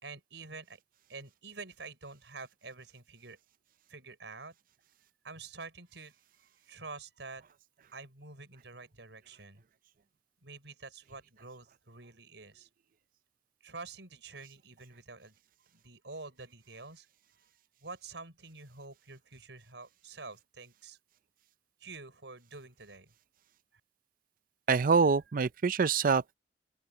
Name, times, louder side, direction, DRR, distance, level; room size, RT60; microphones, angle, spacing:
voice 1, 0.0-0.8 1.1-3.4 3.9-4.5 5.2-6.2 6.6-7.4 7.9-9.6 10.4-12.7 13.6-15.4 15.7-17.1 17.4-17.5 17.8-21.0 21.8-23.1 23.7-23.8, right 3 dB, 80° right, 5.5 m, -47 dB
voice 2, 24.7-26.3, right 5 dB, 50° right, 0.5 m, -25 dB
open air
head